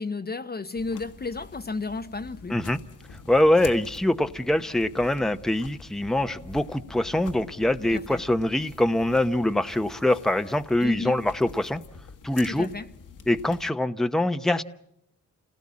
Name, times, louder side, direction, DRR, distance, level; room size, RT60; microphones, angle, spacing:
voice 1, 0.0-2.6 7.9-8.2 10.8-11.2 12.5-12.9, left 3 dB, 30° left, 0.9 m, -33 dB
sound 1, 0.8-13.7, left 5 dB, 70° left, 1.7 m, -46 dB
voice 2, 3.3-11.8 12.2-12.7 13.3-14.6, left 1 dB, ahead, 0.9 m, -24 dB
28.5 x 18.0 x 8.6 m
cardioid pair, 75°, 32 cm